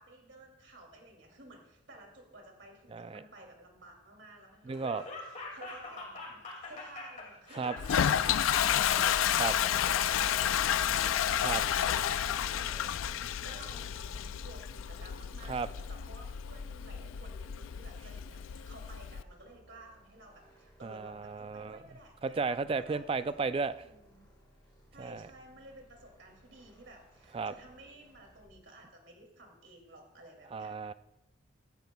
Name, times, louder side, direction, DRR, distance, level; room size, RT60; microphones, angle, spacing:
voice 1, 0.0-23.4 23.8-24.3 24.9-30.9, right 1 dB, 65° right, 2 dB, 2.5 m, -54 dB
Laughter, 4.7-12.4, left 3 dB, 40° left, 2.2 m, -44 dB
voice 2, 4.7-5.0 7.5-7.8 9.4-9.5 11.4-11.6 15.5-15.7 20.8-21.8 22.2-23.8 25.0-25.2 27.3-27.5 30.5-30.9, right 4 dB, 30° right, 13 dB, 0.3 m, -34 dB
Toilet flush, 7.8-19.2, left 9 dB, 85° left, 0.3 m, -31 dB
sound 1, 17.5-28.6, right 1 dB, 20° left, 4.1 m, -63 dB
15.0 x 10.5 x 2.3 m, 0.94 s
head